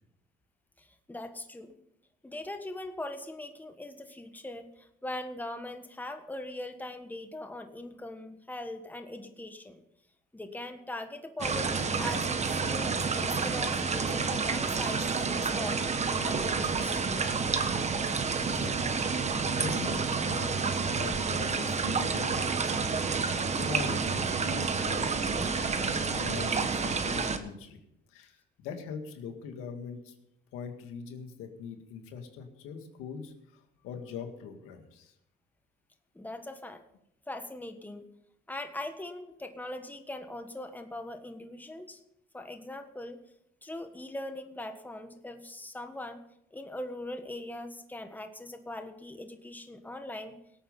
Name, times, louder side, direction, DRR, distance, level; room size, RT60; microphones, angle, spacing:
voice 1, 0.8-1.8 2.2-9.8 10.3-15.9 16.2-17.0 36.1-36.8 37.3-38.0 38.5-42.0 42.3-43.2 43.6-46.2 46.5-50.4, left 1 dB, 10° left, 7 dB, 1.4 m, -41 dB
sound 1, 11.4-27.4, right 5 dB, 30° right, 1.4 m, -29 dB
voice 2, 18.4-19.0 19.5-20.6 20.9-22.9 23.3-27.8 28.1-30.1 30.5-35.1, left 6 dB, 90° left, 5 dB, 2.0 m, -42 dB
18.0 x 8.7 x 5.4 m, 0.81 s
cardioid pair, 95°, 21 cm